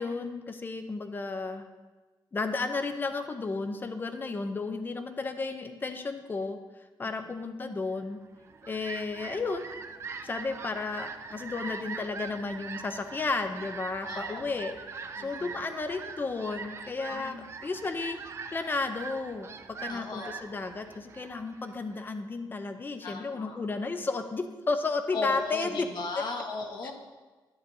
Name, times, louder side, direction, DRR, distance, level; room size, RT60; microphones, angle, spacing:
voice 1, 0.0-1.7 2.3-6.6 7.0-8.2 8.6-9.7 10.2-18.2 18.5-19.5 19.8-25.9 26.8-26.9, left 3 dB, 25° left, 8 dB, 0.5 m, -33 dB
Fowl, 8.2-22.2, right 5 dB, 35° right, 0.4 m, -42 dB
voice 2, 14.0-14.5 15.2-15.5 17.1-17.5 19.9-20.3 23.0-23.6 25.1-26.9, left 3 dB, 60° left, 3 dB, 1.2 m, -37 dB
10.5 x 8.7 x 2.7 m, 1.3 s
wide cardioid pair, 180°, 8 cm